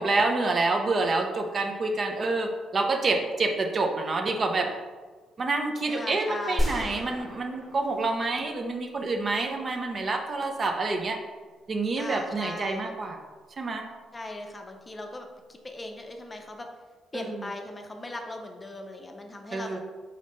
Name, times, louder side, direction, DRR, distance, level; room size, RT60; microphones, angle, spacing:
voice 1, 0.0-4.7 5.4-11.2 11.7-13.2 13.6-13.9 17.1-17.5 19.5-19.8, right 3 dB, 40° right, 4 dB, 0.6 m, -27 dB
voice 2, 5.9-6.8 12.0-12.9 14.1-16.7 17.1-19.8, left 2 dB, 25° left, 3 dB, 0.5 m, -38 dB
sound 1, 6.6-8.9, equal, 5° right, 1.3 m, -32 dB
4.2 x 4.0 x 3.1 m, 1.4 s
cardioid pair, 90°, 0 cm